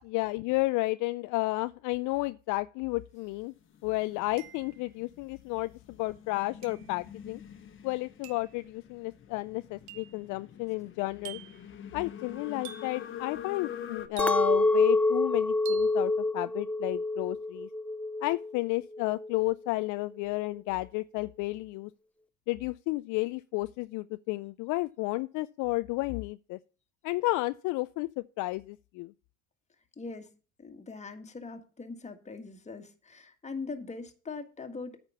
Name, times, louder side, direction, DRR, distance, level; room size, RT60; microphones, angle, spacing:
voice 1, 0.0-3.5 3.8-7.4 7.8-11.4 11.9-17.7 18.2-21.9 22.5-26.6 27.0-29.1, left 21 dB, 60° left, 0.4 m, -32 dB
sound 1, 3.2-3.3 4.4-4.9 6.6-7.0 8.2-8.6 9.9-10.2 11.2-11.7 12.6-13.1 14.2-14.7 15.7-16.0, right 12 dB, 80° right, 0.8 m, -46 dB
sound 2, 3.6-14.1, left 8 dB, 35° left, 1.2 m, -46 dB
Chink clink, 14.2-18.6 18.9-19.5, left 2 dB, 5° left, 0.6 m, -27 dB
voice 2, 30.0-30.3 30.6-35.0, left 4 dB, 20° left, 1.6 m, -41 dB
9.1 x 5.2 x 6.8 m
supercardioid pair, 95°, 34 cm